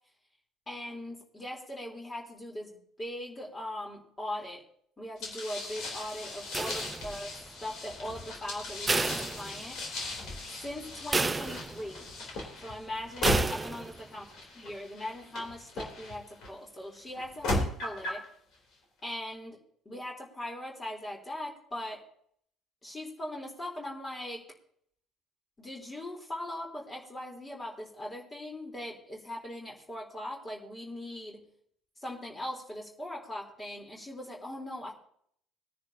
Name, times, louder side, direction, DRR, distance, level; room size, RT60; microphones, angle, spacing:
voice 1, 0.7-4.6 5.0-9.8 10.6-12.1 12.6-14.3 14.6-18.2 19.0-19.6 19.9-22.0 22.8-24.4 25.6-31.5 32.0-34.9, left 1 dB, 25° left, -1 dB, 3.7 m, -40 dB
sound 1, 5.2-16.5 17.2-18.3, left 1 dB, 60° left, 3.6 m, -37 dB
sound 2, 6.5-7.4 8.9-10.0 10.4-10.5 11.1-12.0 13.2-14.0, right 3 dB, 20° right, 0.6 m, -31 dB
20.5 x 10.5 x 2.8 m, 0.65 s
hypercardioid pair, 55°, 0 cm